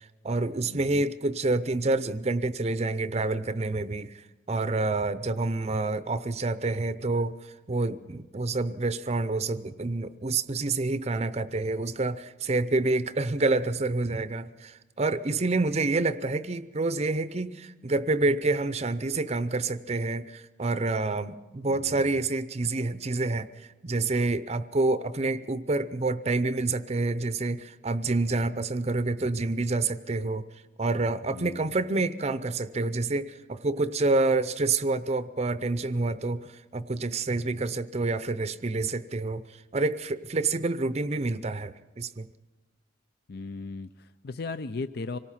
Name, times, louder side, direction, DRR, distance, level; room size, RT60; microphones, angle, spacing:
voice 1, 0.0-30.4 30.8-39.4 39.7-42.3, right 3 dB, 35° right, 13 dB, 0.6 m, -28 dB
voice 2, 0.7-1.0 21.7-22.3 31.3-31.8 43.3-45.2, left 3 dB, 55° left, 12 dB, 0.5 m, -37 dB
25.5 x 18.0 x 5.7 m, 1.2 s
head